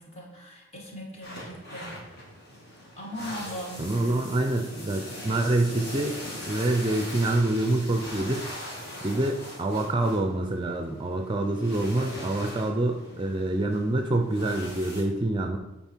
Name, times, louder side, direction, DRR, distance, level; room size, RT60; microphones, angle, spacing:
voice 1, 0.0-2.2 3.0-4.4, equal, 35° left, -2 dB, 1.6 m, -40 dB
sound 1, 1.2-15.0, equal, 55° left, 2.5 m, -41 dB
voice 2, 3.8-6.1 6.5-8.5 9.0-15.6, right 2 dB, 25° right, 4 dB, 0.5 m, -26 dB
9.1 x 4.2 x 4.5 m, 1.0 s
head